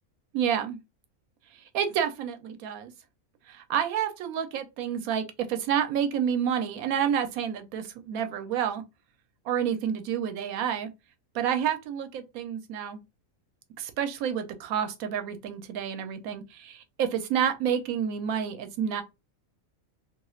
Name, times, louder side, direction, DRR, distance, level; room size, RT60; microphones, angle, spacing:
voice 1, 0.3-0.8 1.7-2.9 3.5-8.8 9.5-10.9 11.3-13.0 13.8-19.0, right 8 dB, 85° right, 1.0 m, -29 dB
2.7 x 2.3 x 3.0 m
omnidirectional pair, 1.5 m